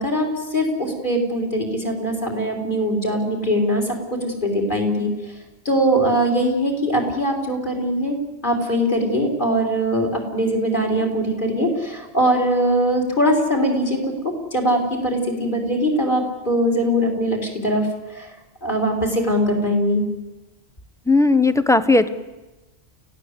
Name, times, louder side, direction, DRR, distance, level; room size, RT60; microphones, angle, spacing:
voice 1, 0.0-5.3 5.6-8.2 8.4-18.3 18.6-20.0, equal, 45° left, 1 dB, 4.5 m, -21 dB
voice 2, 21.1-22.1, left 3 dB, 5° left, 12 dB, 0.9 m, -16 dB
29.5 x 17.0 x 8.2 m, 1.1 s
omnidirectional pair, 1.1 m